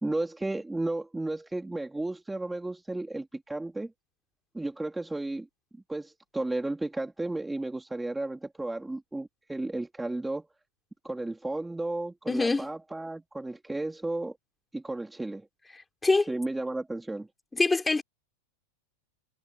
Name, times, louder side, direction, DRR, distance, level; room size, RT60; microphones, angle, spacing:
voice 1, 0.0-3.9 4.5-5.5 5.9-10.4 11.0-14.4 14.7-15.5 16.3-17.3, right 2 dB, 5° right, 2.5 m, -33 dB
voice 2, 12.3-12.7 16.0-16.3 17.5-18.0, left 3 dB, 10° left, 3.1 m, -24 dB
hypercardioid pair, 125°, 0 cm